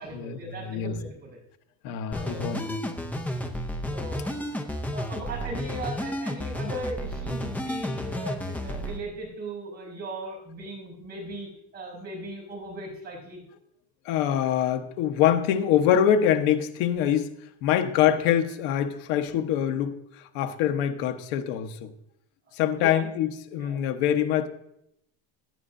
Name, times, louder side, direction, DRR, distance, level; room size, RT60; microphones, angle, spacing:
voice 1, 0.0-1.4 2.1-2.5 3.6-4.4 4.9-13.4 22.7-23.0 23.6-23.8, right 2 dB, 20° right, -4 dB, 5.5 m, -38 dB
voice 2, 1.8-3.0 14.0-17.3 17.6-20.0 20.3-21.9 22.5-24.5, left 10 dB, 85° left, 7 dB, 1.2 m, -24 dB
sound 1, 2.1-9.0, equal, 5° left, 0.5 m, -32 dB
17.0 x 11.0 x 2.6 m, 0.77 s
cardioid pair, 175°, 47 cm